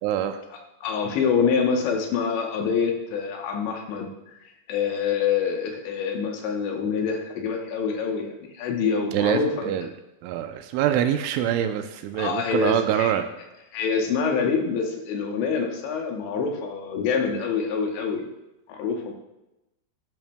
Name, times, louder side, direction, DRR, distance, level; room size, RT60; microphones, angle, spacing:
voice 1, 0.0-0.4 9.1-9.9 10.2-13.3, right 10 dB, 85° right, 8 dB, 2.9 m, -25 dB
voice 2, 0.8-9.7 12.1-13.1 13.7-18.2 18.7-19.1, left 6 dB, 75° left, 2 dB, 3.0 m, -26 dB
13.5 x 10.5 x 2.2 m, 0.96 s
omnidirectional pair, 5.6 m